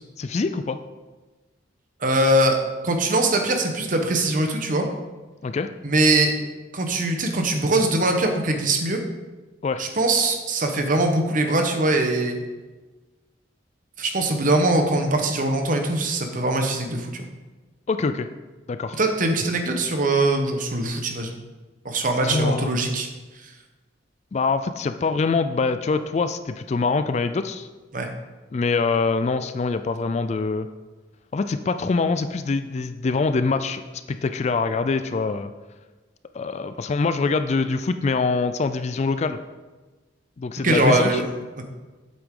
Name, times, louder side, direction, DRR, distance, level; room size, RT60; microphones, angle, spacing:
voice 1, 0.2-0.8 5.4-5.7 9.6-9.8 17.9-18.3 18.7-19.0 22.2-22.8 24.3-27.7 28.5-30.7 31.3-33.8 34.1-35.5 36.3-39.4 40.4-41.2, left 4 dB, 35° left, 10 dB, 0.3 m, -24 dB
voice 2, 2.0-2.6 2.8-4.8 5.8-6.3 6.7-9.0 9.8-12.4 14.0-17.3 19.0-21.4 21.8-23.1 27.9-28.1 40.6-41.3, right 2 dB, 45° right, 4 dB, 1.0 m, -22 dB
8.4 x 7.8 x 3.8 m, 1.2 s
head